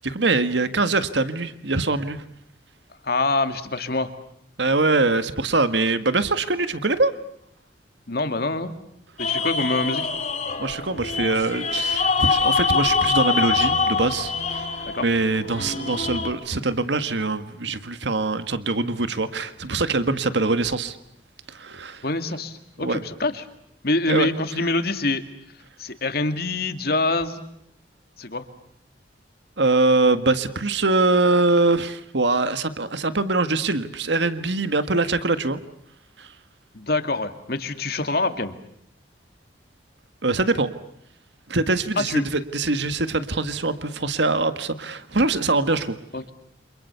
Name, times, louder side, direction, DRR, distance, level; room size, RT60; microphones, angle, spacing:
voice 1, 0.0-2.2 4.6-7.1 10.6-14.6 15.0-21.0 21.5-22.0 22.8-23.0 24.1-24.3 29.6-35.6 36.2-36.3 40.2-40.7 41.5-46.0, right 3 dB, 75° right, 11 dB, 1.7 m, -23 dB
voice 2, 3.0-4.1 8.1-8.7 9.2-10.1 14.9-15.1 22.0-23.4 23.8-25.2 25.8-27.4 28.2-28.5 36.7-38.5 42.1-42.2 46.1-46.3, left 2 dB, 55° left, 8 dB, 2.2 m, -25 dB
sound 1, 9.2-16.3, left 4 dB, 40° left, 3.3 m, -24 dB
29.0 x 27.5 x 7.0 m, 0.73 s
head